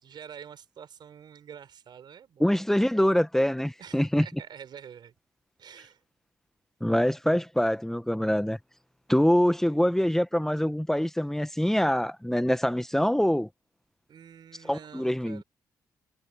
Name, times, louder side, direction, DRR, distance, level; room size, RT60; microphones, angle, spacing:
voice 1, 0.0-2.6 3.8-5.1 5.6-6.0 14.1-15.4, right 8 dB, 65° right, 4.5 m, -47 dB
voice 2, 2.4-4.2 6.8-8.6 9.1-13.5 14.6-15.4, equal, 5° left, 1.3 m, -24 dB
hypercardioid pair, 45°, 8 cm